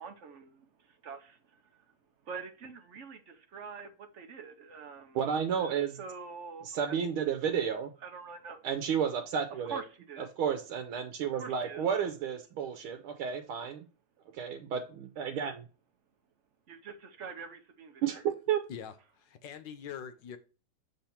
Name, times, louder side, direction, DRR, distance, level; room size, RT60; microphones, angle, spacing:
voice 1, 0.0-1.8 2.2-5.2 5.5-7.0 8.0-8.6 9.6-10.3 11.2-11.9 16.7-18.2, right 5 dB, 60° right, 0.7 m, -45 dB
voice 2, 5.1-6.0 6.6-7.9 8.6-9.8 10.4-13.8 14.3-15.6 18.0-18.6, right 8 dB, 90° right, 1.6 m, -32 dB
voice 3, 19.2-20.4, left 8 dB, 70° left, 1.3 m, -43 dB
6.8 x 3.8 x 4.3 m
omnidirectional pair, 2.2 m